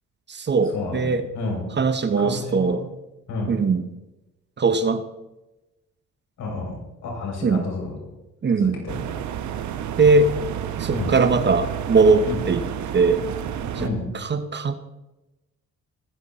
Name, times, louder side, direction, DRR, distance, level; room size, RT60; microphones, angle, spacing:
voice 1, 0.3-1.2 1.8-2.8 3.5-3.8 4.6-5.0 7.4-7.7 8.4-8.8 10.0-10.3 10.8-12.6 12.9-13.2 14.1-14.7, right 4 dB, 35° right, 11 dB, 0.9 m, -20 dB
voice 2, 2.2-2.7 3.3-3.5 6.4-8.0 8.6-9.0 10.9-11.1 12.2-12.4 13.8-14.1, left 3 dB, 70° left, 0 dB, 5.3 m, -30 dB
sound 1, 8.9-13.9, right 9 dB, 70° right, 1.1 m, -30 dB
21.0 x 7.2 x 4.1 m, 1.0 s
cardioid pair, 90°, 30 cm